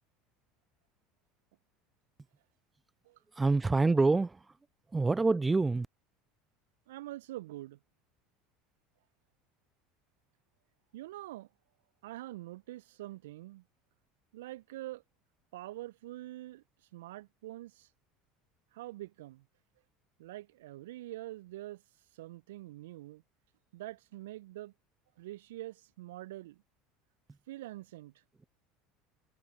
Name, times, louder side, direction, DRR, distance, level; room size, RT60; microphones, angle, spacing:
voice 1, 3.4-4.4 4.9-5.9, right 3 dB, 15° right, 0.4 m, -26 dB
voice 2, 6.9-7.8 10.9-11.5 12.0-13.6 14.3-15.0 15.5-16.6 16.9-17.9 18.7-19.4 20.2-21.8 22.1-23.2 23.7-24.7 25.2-26.6 27.5-28.1, right 16 dB, 70° right, 0.8 m, -45 dB
figure-of-eight pair, 70°, 0 cm